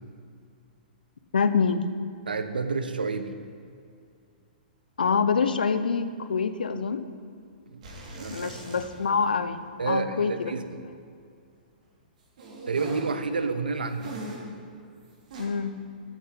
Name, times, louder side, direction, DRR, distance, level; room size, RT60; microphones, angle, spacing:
voice 1, 1.3-1.9 5.0-7.1 8.3-9.6 9.9-10.5 15.4-15.9, left 5 dB, 75° left, 12 dB, 0.8 m, -26 dB
voice 2, 2.3-3.4 7.7-7.8 8.2-8.6 9.8-10.8 12.7-14.1, right 4 dB, 80° right, 9 dB, 1.0 m, -30 dB
sound 1, 7.8-9.2 9.5-9.6 12.4-13.2 14.0-14.6 15.3-15.5, right 2 dB, 55° right, 3.4 m, -40 dB
13.5 x 7.4 x 5.6 m, 2.4 s
figure-of-eight pair, 110°, 5 cm